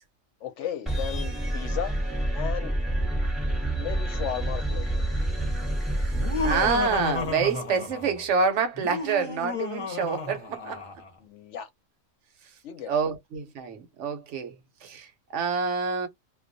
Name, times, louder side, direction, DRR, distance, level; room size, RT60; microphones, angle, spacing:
voice 1, 0.4-2.0 2.3-2.7 3.7-5.0 11.2-11.7 12.6-12.9, left 9 dB, 70° left, 0.9 m, -35 dB
sound 1, 0.9-7.4, right 1 dB, ahead, 0.8 m, -28 dB
Laughter, 6.1-8.3 8.7-11.1, left 4 dB, 35° left, 0.5 m, -32 dB
voice 2, 6.4-10.9 12.9-14.5 14.8-16.1, right 5 dB, 65° right, 0.9 m, -27 dB
2.2 x 2.2 x 2.5 m
omnidirectional pair, 1.4 m